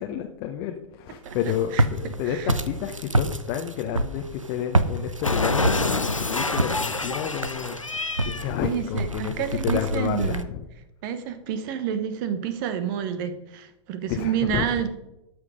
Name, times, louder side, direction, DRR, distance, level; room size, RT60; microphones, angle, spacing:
voice 1, 0.0-9.3 9.6-10.6 14.1-14.6, left 10 dB, 35° left, 3 dB, 0.9 m, -30 dB
Walk footsteps, 1.2-10.4, right 2 dB, 85° right, 0.8 m, -28 dB
voice 2, 1.7-2.5 8.6-10.4 11.0-14.9, right 8 dB, 40° right, 11 dB, 1.2 m, -29 dB
Cat, 5.2-8.5, left 3 dB, 90° left, 0.7 m, -27 dB
13.5 x 6.4 x 5.0 m, 0.89 s
figure-of-eight pair, 100°, 16 cm